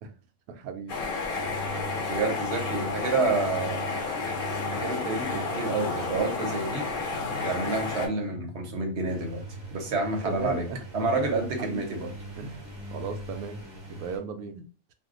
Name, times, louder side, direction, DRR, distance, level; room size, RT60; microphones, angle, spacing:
voice 1, 0.5-1.1 10.2-10.8 11.6-11.9 12.4-13.6 13.9-14.6, right 5 dB, 85° right, 1.0 m, -36 dB
sound 1, 0.9-8.1, left 4 dB, 50° left, 0.8 m, -31 dB
sound 2, 1.3-14.1, right 1 dB, 80° left, 1.1 m, -42 dB
voice 2, 2.0-4.0 4.6-6.9 7.4-9.4 9.7-10.6 10.9-12.1, right 3 dB, 55° right, 1.0 m, -29 dB
sound 3, 9.1-14.2, right 1 dB, 25° right, 0.7 m, -45 dB
2.7 x 2.2 x 3.6 m
omnidirectional pair, 1.5 m